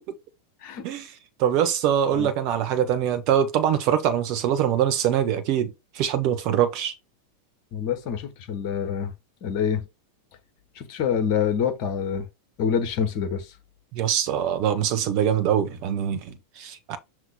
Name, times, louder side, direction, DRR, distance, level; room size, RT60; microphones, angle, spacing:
voice 1, 0.8-1.1 1.4-6.9 13.9-17.0, right 9 dB, 40° right, 1.0 m, -23 dB
voice 2, 7.7-9.1 9.4-9.9 10.7-12.3 12.6-13.5, left 7 dB, 45° left, 1.3 m, -26 dB
5.9 x 3.0 x 5.2 m
figure-of-eight pair, 90°, 0 cm